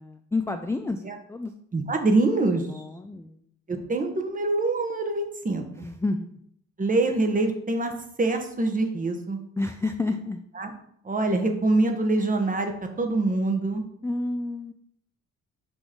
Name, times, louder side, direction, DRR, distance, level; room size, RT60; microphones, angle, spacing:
voice 1, 0.0-1.0 1.3-1.5 2.7-3.4 5.8-6.3 9.6-10.4 14.0-14.7, left 2 dB, 10° left, 6 dB, 0.3 m, -29 dB
voice 2, 1.7-2.8 3.7-5.9 6.8-7.9 8.2-9.4 10.6-10.7 11.0-12.7 13.0-13.8, right 2 dB, 25° right, 4 dB, 1.1 m, -24 dB
6.3 x 3.0 x 5.0 m, 0.69 s
cardioid pair, 90°, 30 cm